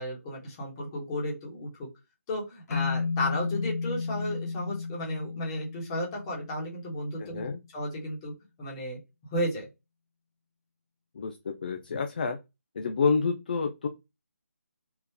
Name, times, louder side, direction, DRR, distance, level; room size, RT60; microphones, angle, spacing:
voice 1, 0.0-1.7 2.3-7.4 7.7-8.3 8.6-9.0 9.3-9.7, left 1 dB, 15° left, -2 dB, 1.2 m, -33 dB
sound 1, 2.7-7.0, left 4 dB, 75° left, 0.6 m, -33 dB
voice 2, 7.2-7.6 11.1-12.4 12.7-13.9, left 5 dB, 35° left, 6 dB, 0.4 m, -28 dB
3.7 x 2.4 x 2.8 m, 0.24 s
figure-of-eight pair, 165°, 9 cm